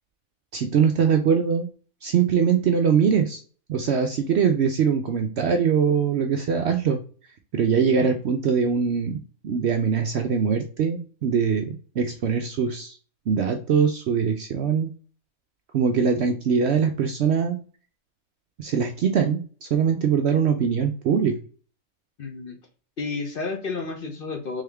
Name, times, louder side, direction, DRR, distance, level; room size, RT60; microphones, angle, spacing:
voice 1, 0.5-1.7 2.0-3.4 3.7-7.0 7.5-9.2 9.4-13.0 13.3-14.9 15.7-17.6 18.6-21.4, right 6 dB, 65° right, 5 dB, 0.7 m, -22 dB
voice 2, 22.2-22.6 23.0-24.6, left 4 dB, 50° left, 3 dB, 0.8 m, -31 dB
3.6 x 3.4 x 3.4 m, 0.40 s
omnidirectional pair, 1.5 m